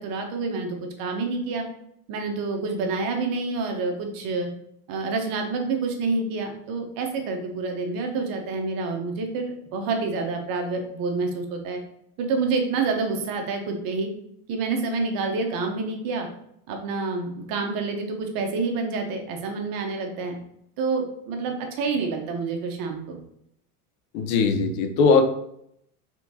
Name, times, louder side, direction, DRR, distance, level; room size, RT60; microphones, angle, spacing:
voice 1, 0.0-1.6 2.1-4.5 4.9-11.8 12.2-14.1 14.5-16.3 16.7-20.4 20.8-23.2, right 4 dB, 45° right, 3 dB, 1.0 m, -28 dB
voice 2, 24.1-25.2, left 4 dB, 65° left, 5 dB, 0.7 m, -20 dB
4.3 x 3.6 x 2.7 m, 0.73 s
supercardioid pair, 125°, 47 cm